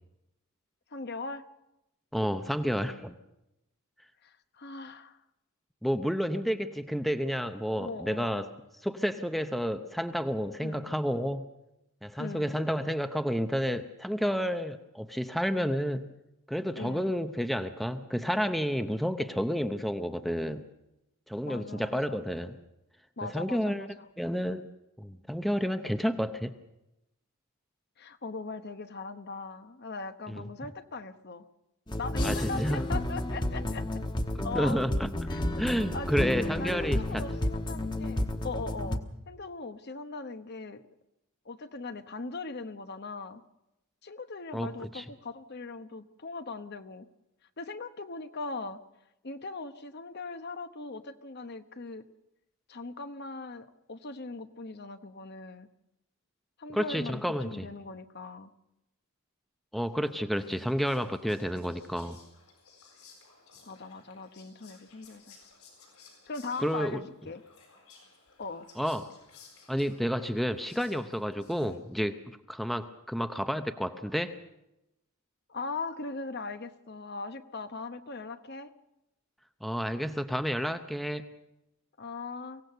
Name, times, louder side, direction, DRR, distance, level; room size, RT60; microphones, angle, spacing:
voice 1, 0.9-1.4 4.2-5.2 7.7-8.4 10.6-10.9 12.2-12.5 16.7-17.1 21.4-22.2 23.2-24.0 28.0-31.4 32.0-34.0 34.4-34.8 35.3-35.4 35.9-36.3 36.6-40.8 41.4-43.4 44.0-47.1 47.6-48.8 49.2-52.1 52.7-55.7 56.6-58.5 63.6-65.4 66.3-67.4 68.4-68.7 71.7-71.8 75.5-78.7 82.0-82.6, left 3 dB, 45° left, 10 dB, 0.9 m, -40 dB
voice 2, 2.1-3.1 5.8-8.5 8.8-11.5 12.0-16.1 16.5-20.6 21.3-22.6 23.2-23.9 24.2-24.7 25.0-26.5 30.4-30.5 32.2-32.8 34.5-35.1 35.6-37.2 44.5-45.0 56.7-57.7 59.7-62.2 66.6-67.0 68.8-69.1 69.7-72.2 72.5-74.3 79.6-81.3, equal, ahead, 8 dB, 0.6 m, -30 dB
sound 1, 31.9-39.0, left 1 dB, 20° left, 1.1 m, -31 dB
Whispering, 60.0-72.0, left 5 dB, 75° left, 7.7 m, -58 dB
24.0 x 17.0 x 6.8 m, 0.90 s
head